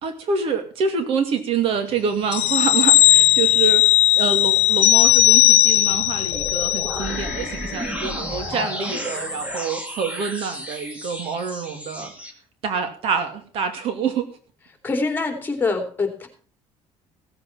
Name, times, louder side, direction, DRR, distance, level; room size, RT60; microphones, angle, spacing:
voice 1, 0.0-12.1 12.6-14.3, right 6 dB, 60° right, 8 dB, 2.4 m, -26 dB
sound 1, 2.3-7.4 7.8-7.9, left 16 dB, 70° left, 0.5 m, -17 dB
sound 2, 6.3-12.3, equal, 10° right, 2.4 m, -32 dB
voice 2, 14.8-16.3, left 3 dB, 15° left, 6 dB, 2.9 m, -24 dB
16.5 x 8.2 x 5.7 m, 0.41 s
cardioid pair, 135°, 11 cm